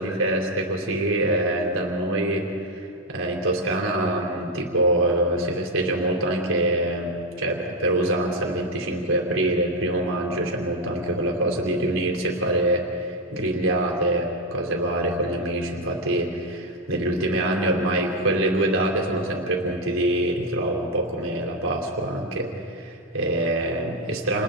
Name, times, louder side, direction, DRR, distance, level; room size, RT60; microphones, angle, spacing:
voice 1, 0.0-2.8 3.1-24.4, right 1 dB, 85° right, 0 dB, 3.5 m, -25 dB
29.5 x 29.5 x 3.9 m, 2.5 s
head